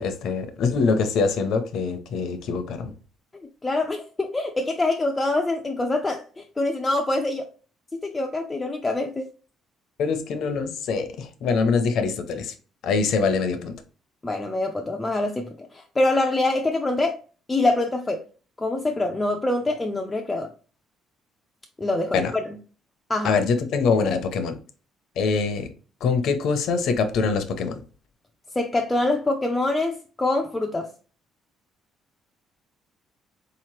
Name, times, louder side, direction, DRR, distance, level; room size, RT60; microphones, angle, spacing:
voice 1, 0.0-2.9 10.0-12.5 12.8-13.7 22.1-22.3 23.2-24.6 25.2-25.7 26.0-27.8, left 4 dB, 60° left, 0.6 m, -24 dB
voice 2, 3.6-7.4 7.9-9.3 14.2-15.5 16.0-17.2 17.5-18.2 18.6-20.5 21.8-22.2 23.1-23.3 28.6-30.9, left 2 dB, 15° left, 0.3 m, -24 dB
4.0 x 2.9 x 3.1 m
cardioid pair, 160°, 0 cm